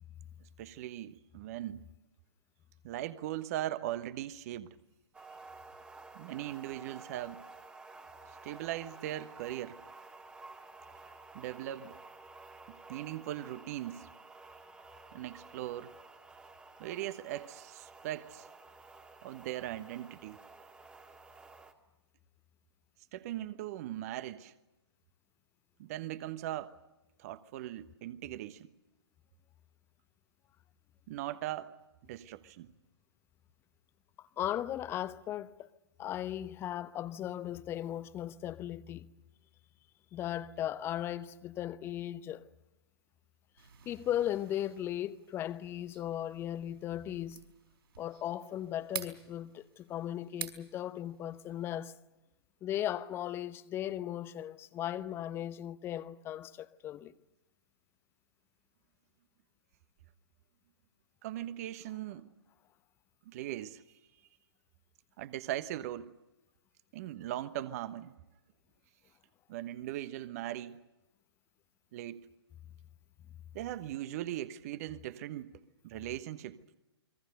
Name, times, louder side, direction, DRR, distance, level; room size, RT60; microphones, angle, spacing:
voice 1, 0.6-1.8 2.8-4.8 6.1-7.4 8.4-9.8 11.3-11.9 12.7-14.1 15.1-15.9 16.8-18.5 19.2-20.4 23.1-24.5 25.8-26.7 27.2-28.7 31.1-31.7 32.0-32.7 61.2-62.3 63.3-63.8 65.2-66.1 66.9-68.1 69.5-70.8 71.9-72.3 73.5-76.6, right 13 dB, 35° right, 1.1 m, -39 dB
sound 1, 5.1-21.7, right 3 dB, 10° right, 2.0 m, -52 dB
voice 2, 34.2-35.7 36.0-39.1 40.1-42.4 43.9-47.4 48.0-51.9 52.6-57.1, left 12 dB, 15° left, 0.8 m, -37 dB
sound 2, 43.6-52.0, right 8 dB, 60° right, 4.6 m, -49 dB
29.5 x 23.0 x 6.7 m
figure-of-eight pair, 125°, 14 cm